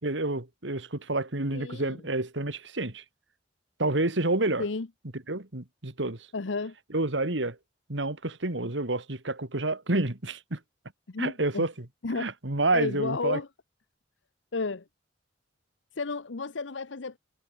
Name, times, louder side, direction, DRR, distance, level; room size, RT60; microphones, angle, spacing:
voice 1, 0.0-3.0 3.8-4.6 5.3-6.2 6.9-7.6 7.9-10.6 11.2-11.7 12.2-13.4, right 2 dB, 75° right, 2.3 m, -29 dB
voice 2, 1.5-2.0 4.6-4.9 6.3-6.7 11.1-11.7 12.0-12.3 12.7-13.5 14.5-14.8 16.0-17.2, left 3 dB, 85° left, 0.9 m, -32 dB
head